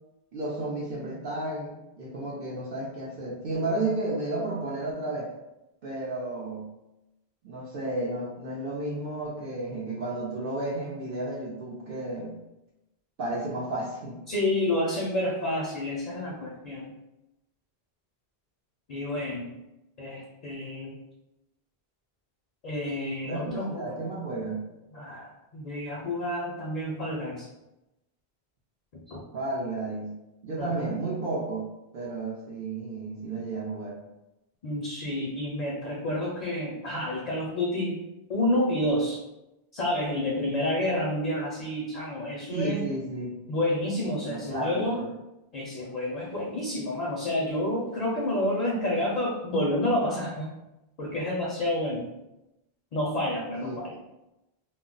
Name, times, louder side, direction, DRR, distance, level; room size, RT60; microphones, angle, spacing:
voice 1, 0.3-5.3 5.8-6.7 7.4-12.3 13.2-14.2 23.2-24.6 29.3-30.1 30.4-31.6 31.9-34.0 42.5-43.4 44.3-45.1 53.6-53.8, right 2 dB, 65° right, -5 dB, 0.7 m, -32 dB
voice 2, 14.3-16.9 18.9-19.5 20.0-21.0 22.6-24.0 24.9-27.5 28.9-29.2 30.6-30.9 34.6-38.0 38.3-39.2 39.7-42.9 43.5-45.0 45.5-50.5 51.0-52.1 52.9-54.0, left 1 dB, 55° left, -2 dB, 0.5 m, -29 dB
2.2 x 2.0 x 3.7 m, 0.94 s
omnidirectional pair, 1.0 m